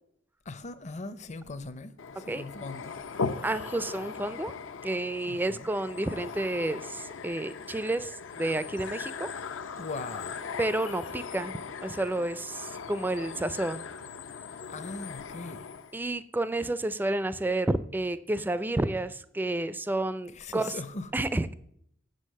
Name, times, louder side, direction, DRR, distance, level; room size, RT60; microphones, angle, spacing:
voice 1, 0.5-2.9 5.3-5.7 9.8-10.4 14.7-15.7 20.3-21.1, left 3 dB, 35° left, 0.6 m, -40 dB
sound 1, 2.0-15.9, left 5 dB, 80° left, 0.6 m, -39 dB
voice 2, 3.4-4.5 4.8-9.3 10.6-13.8 15.9-20.7 21.1-21.6, right 2 dB, 10° right, 0.3 m, -30 dB
7.6 x 6.5 x 6.4 m
head